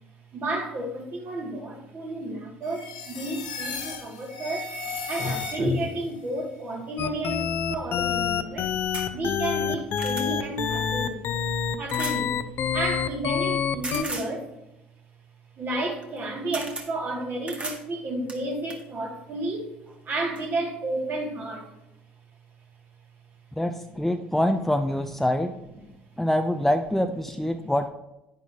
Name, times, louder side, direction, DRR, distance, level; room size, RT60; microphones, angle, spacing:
voice 1, 0.3-4.8 5.1-8.7 9.1-11.3 11.8-12.5 12.7-14.5 15.6-19.8 20.0-21.7 25.8-25.9 27.3-27.7, right 1 dB, 40° right, 0 dB, 2.6 m, -31 dB
sound 1, 2.6-6.0, left 4 dB, 80° left, 1.9 m, -35 dB
sound 2, 7.0-14.0, left 8 dB, 50° left, 0.8 m, -27 dB
sound 3, 8.9-9.1 9.6-10.3 11.9-12.2 13.8-14.3 16.0-16.2 16.5-16.9 17.5-17.8 18.3-18.8 19.9-20.0 20.3-20.4, right 2 dB, 25° right, 1.8 m, -35 dB
voice 2, 23.6-25.5 26.2-27.9, left 1 dB, 5° left, 7 dB, 0.7 m, -25 dB
10.0 x 10.0 x 3.0 m, 0.94 s
hypercardioid pair, 60°, 5 cm